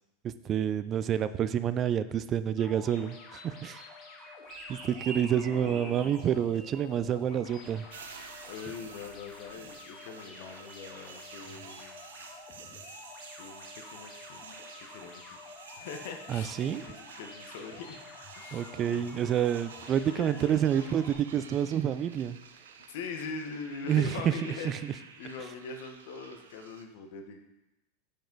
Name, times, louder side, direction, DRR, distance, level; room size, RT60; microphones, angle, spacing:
voice 1, 0.2-3.8 4.7-7.9 16.3-16.8 18.5-22.4 23.9-24.1, right 9 dB, 35° right, 13 dB, 0.4 m, -28 dB
sound 1, 2.6-21.1, left 3 dB, 45° left, 1.6 m, -49 dB
sound 2, 4.5-9.7, right 3 dB, 55° right, 2.7 m, -48 dB
voice 2, 5.4-6.3 8.4-12.1 12.7-13.0 13.4-19.3 20.1-20.6 22.9-27.4, left 5 dB, 65° left, 5 dB, 1.1 m, -43 dB
sound 3, 7.9-26.8, right 6 dB, 85° right, 0.7 m, -50 dB
8.7 x 5.1 x 4.0 m, 0.98 s
hypercardioid pair, 105°, 0 cm